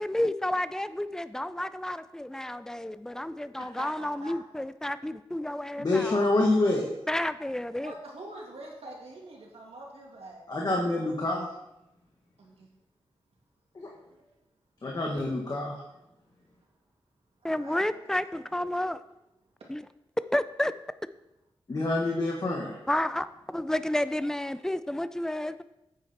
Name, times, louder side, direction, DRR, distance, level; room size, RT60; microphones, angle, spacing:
voice 1, 0.0-6.3 7.1-7.9 17.4-19.0 19.7-19.8 20.3-20.7 22.9-25.6, left 1 dB, 5° left, 13 dB, 0.4 m, -31 dB
voice 2, 3.3-4.3 7.8-10.5 12.4-12.7 14.1-14.2 17.6-18.4, right 1 dB, 85° right, -1 dB, 2.4 m, -45 dB
voice 3, 5.8-6.9 10.5-11.5 13.7-13.9 14.8-15.7 21.7-22.7, left 2 dB, 40° left, -2 dB, 1.5 m, -27 dB
9.0 x 8.3 x 4.3 m, 0.87 s
wide cardioid pair, 130°, 10 cm